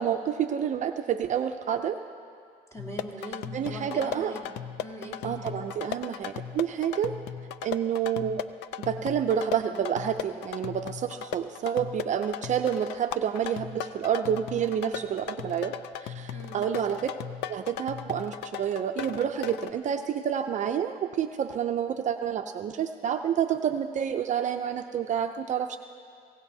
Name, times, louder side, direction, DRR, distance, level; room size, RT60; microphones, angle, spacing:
voice 1, 0.0-2.0 3.5-4.3 5.2-7.1 7.6-8.4 8.8-17.1 17.5-25.8, right 8 dB, 45° right, 7 dB, 0.5 m, -29 dB
voice 2, 2.7-4.5 4.8-5.6 16.3-16.7, right 1 dB, 20° left, -3 dB, 2.8 m, -41 dB
sound 1, 2.8-19.7, left 10 dB, 85° left, 0.5 m, -37 dB
26.0 x 17.0 x 2.7 m, 2.3 s
cardioid pair, 110°, 17 cm